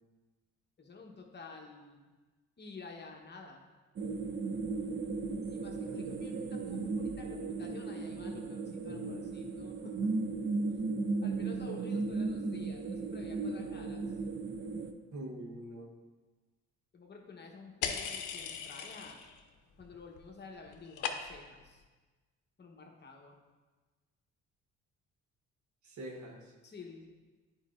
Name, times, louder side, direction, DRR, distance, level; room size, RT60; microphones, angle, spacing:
voice 1, 0.8-2.1 2.6-3.6 5.5-10.1 11.2-14.2 16.9-19.2 19.8-21.8 22.6-23.4 26.6-27.1, left 3 dB, 35° left, 1 dB, 1.0 m, -50 dB
sound 1, 4.0-14.9, right 3 dB, 40° right, 0.6 m, -36 dB
voice 2, 15.1-15.9 25.8-26.5, right 1 dB, 70° right, 1 dB, 1.2 m, -44 dB
sound 2, 17.8-19.4 19.7-20.2 20.5-21.6, left 7 dB, 80° left, 0.6 m, -38 dB
9.9 x 4.7 x 2.5 m, 1.3 s
cardioid pair, 90°, 30 cm